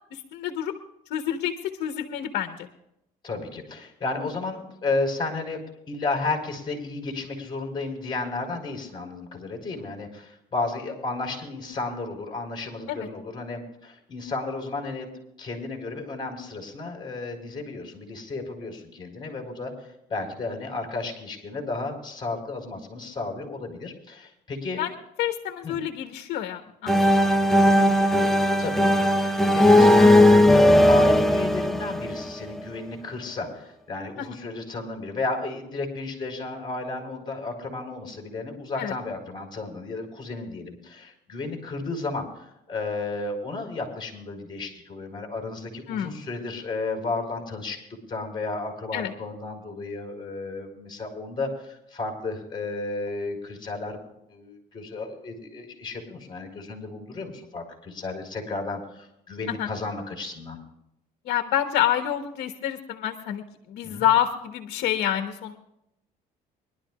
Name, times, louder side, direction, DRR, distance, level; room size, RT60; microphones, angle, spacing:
voice 1, 0.1-0.7 1.1-2.7 12.9-13.1 24.8-24.9 25.2-28.1 34.2-34.3 38.8-38.9 45.9-46.2 48.9-49.1 59.5-59.7 61.2-65.6, left 11 dB, 80° left, 6 dB, 1.2 m, -28 dB
voice 2, 3.2-15.1 15.4-24.8 25.6-25.8 28.6-47.8 48.1-54.0 54.3-60.6 63.8-64.1, left 3 dB, 25° left, 2 dB, 4.5 m, -33 dB
sound 1, 26.9-32.6, left 1 dB, ahead, 0.9 m, -18 dB
24.0 x 12.0 x 2.5 m, 0.81 s
cardioid pair, 110°, 17 cm